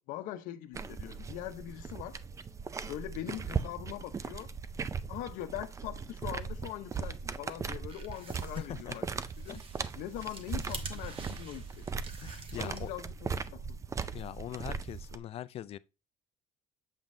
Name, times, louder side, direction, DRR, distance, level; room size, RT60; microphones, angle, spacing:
voice 1, 0.0-2.2 2.9-4.5 5.1-9.1 9.4-9.6 9.9-11.8 12.6-13.6, left 13 dB, 80° left, 0.7 m, -42 dB
sound 1, 0.7-15.2, right 5 dB, 20° right, 0.4 m, -39 dB
sound 2, 7.6-13.2, right 4 dB, 40° right, 1.1 m, -48 dB
voice 2, 8.6-9.0 9.5-9.6 12.2-12.9 14.1-15.8, left 12 dB, 45° left, 0.4 m, -42 dB
7.4 x 5.3 x 2.6 m
cardioid pair, 115°, 14 cm